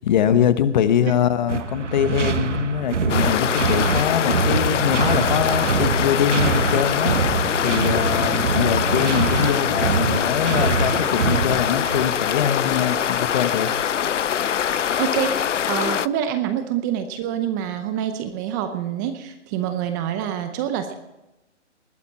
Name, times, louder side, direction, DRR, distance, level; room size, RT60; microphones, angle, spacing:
voice 1, 0.0-7.1 7.6-13.7, left 9 dB, 40° left, 13 dB, 1.1 m, -23 dB
sound 1, 1.5-12.2, right 5 dB, 80° right, 1.6 m, -24 dB
sound 2, 3.1-16.1, left 9 dB, 85° left, 0.6 m, -23 dB
voice 2, 15.0-20.9, right 9 dB, 15° right, 9 dB, 0.7 m, -26 dB
20.0 x 12.5 x 4.2 m, 0.97 s
hypercardioid pair, 145°, 35 cm